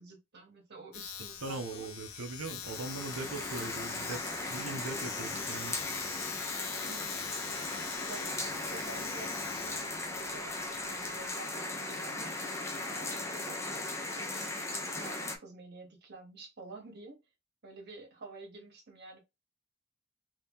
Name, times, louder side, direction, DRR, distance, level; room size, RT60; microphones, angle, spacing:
voice 1, 0.0-1.9 6.8-7.3 8.1-13.6 14.1-17.2 17.6-19.2, right 3 dB, 50° right, 1.1 m, -50 dB
Domestic sounds home sounds, 0.9-11.3, left 9 dB, 90° left, 0.5 m, -44 dB
voice 2, 1.4-5.8, right 3 dB, 75° right, 0.6 m, -40 dB
sound 1, 2.6-15.4, left 2 dB, 15° left, 0.6 m, -37 dB
2.8 x 2.8 x 3.5 m
head